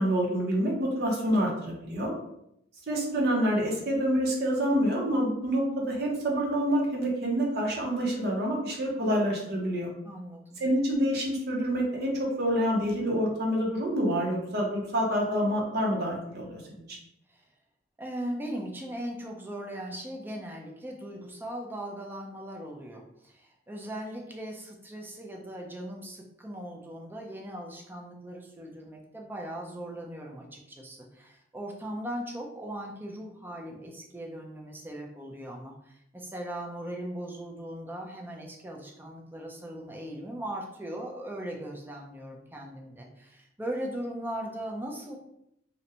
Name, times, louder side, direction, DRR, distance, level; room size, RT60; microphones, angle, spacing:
voice 1, 0.0-2.1 2.9-9.9 10.6-16.8, equal, 55° right, -1 dB, 0.7 m, -27 dB
voice 2, 10.0-10.6 17.3-17.5 18.0-45.2, right 1 dB, 10° right, 0 dB, 0.3 m, -39 dB
2.5 x 2.1 x 2.7 m, 0.80 s
head